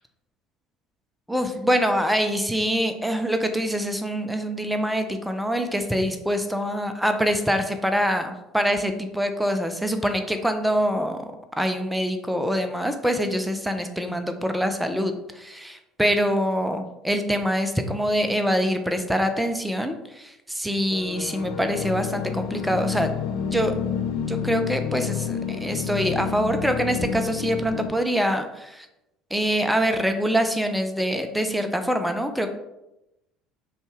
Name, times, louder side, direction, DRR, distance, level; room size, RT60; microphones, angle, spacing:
voice 1, 1.3-23.1 23.4-23.8 24.2-28.9 29.3-32.5, equal, 5° right, 7 dB, 0.5 m, -25 dB
sound 1, 20.9-27.9, left 7 dB, 70° left, 0.4 m, -29 dB
5.4 x 2.3 x 3.2 m, 0.91 s
hypercardioid pair, 75°, 0 cm